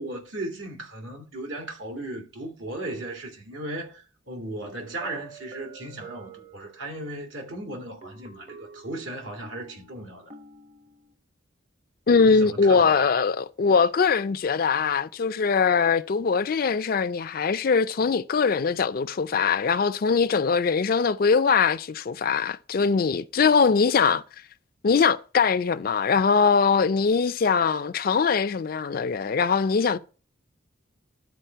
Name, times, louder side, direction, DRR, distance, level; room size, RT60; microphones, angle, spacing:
voice 1, 0.0-10.3 12.2-13.1, right 1 dB, 80° right, 2.2 m, -36 dB
sound 1, 5.0-7.2 8.0-11.1, right 4 dB, 30° right, 0.8 m, -47 dB
voice 2, 12.1-24.2 24.8-30.0, left 5 dB, 50° left, 0.4 m, -22 dB
11.5 x 4.1 x 4.5 m
head